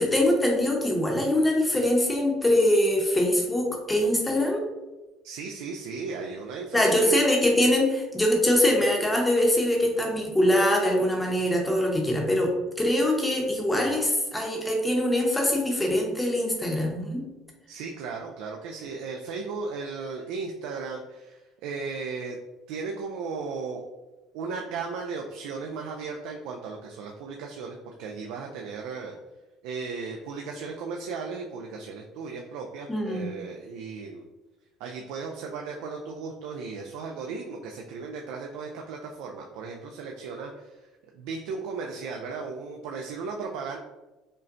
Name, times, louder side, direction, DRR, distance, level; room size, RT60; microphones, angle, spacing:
voice 1, 0.0-4.6 6.7-17.2 32.9-33.3, left 1 dB, 10° left, 0 dB, 0.7 m, -23 dB
voice 2, 5.2-7.1 17.7-22.4 22.7-23.8 24.3-29.2 29.6-34.3 34.8-40.9 41.1-43.8, right 4 dB, 85° right, 1 dB, 0.3 m, -36 dB
5.2 x 2.1 x 2.5 m, 1.1 s
cardioid pair, 145°, 0 cm